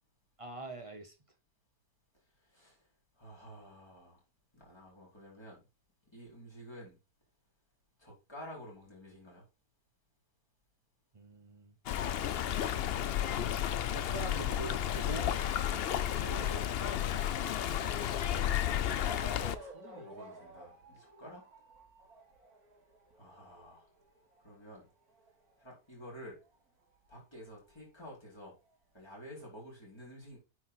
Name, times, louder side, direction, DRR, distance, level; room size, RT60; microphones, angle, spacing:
voice 1, 0.4-1.1 11.1-11.7 13.9-15.3 16.0-16.8, right 3 dB, 25° right, 0.9 m, -44 dB
voice 2, 3.2-4.2 4.5-5.6 6.1-7.0 8.0-9.4 18.4-21.4 23.1-23.9 24.4-24.9 25.6-26.4 27.1-28.5 28.9-30.4, equal, 15° left, 4.7 m, -51 dB
Stream, 11.9-19.6, left 10 dB, 80° left, 0.5 m, -32 dB
Motor vehicle (road) / Siren, 15.1-26.6 26.8-28.0 28.7-28.8 29.0-29.1, right 2 dB, 65° right, 2.1 m, -55 dB
9.4 x 4.8 x 3.9 m
omnidirectional pair, 1.7 m